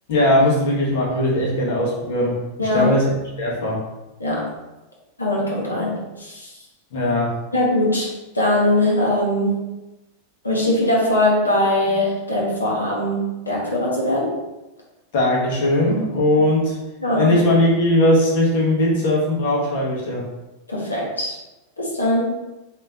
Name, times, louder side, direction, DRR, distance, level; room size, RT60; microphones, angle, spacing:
voice 1, 0.1-3.1 3.4-3.8 6.9-7.3 15.1-16.8 17.2-20.3, left 1 dB, 55° left, -4 dB, 1.3 m, -19 dB
voice 2, 2.6-3.0 4.2-4.5 5.2-6.5 7.5-9.7 10.4-14.4 17.0-17.4 20.7-21.4 21.8-22.3, left 1 dB, 80° left, -4 dB, 1.1 m, -21 dB
3.3 x 2.9 x 3.6 m, 1.0 s
figure-of-eight pair, 90°, 0 cm